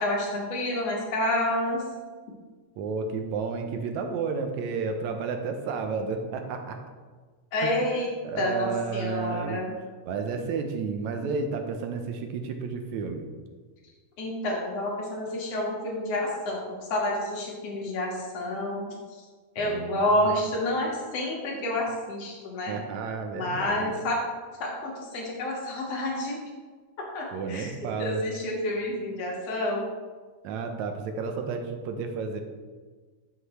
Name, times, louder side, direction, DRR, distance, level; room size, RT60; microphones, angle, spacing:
voice 1, 0.0-1.8 7.5-8.1 8.4-9.7 14.2-16.6 16.9-18.9 19.6-22.8 23.3-24.2 24.6-26.4 27.1-27.7 28.0-29.9, left 1 dB, 55° left, -2 dB, 2.7 m, -29 dB
voice 2, 2.8-6.8 7.6-7.8 8.2-9.6 10.0-13.3 19.6-20.5 22.7-23.9 27.3-28.2 30.4-32.4, right 5 dB, 75° right, 5 dB, 2.0 m, -31 dB
13.0 x 5.7 x 3.2 m, 1.4 s
omnidirectional pair, 3.5 m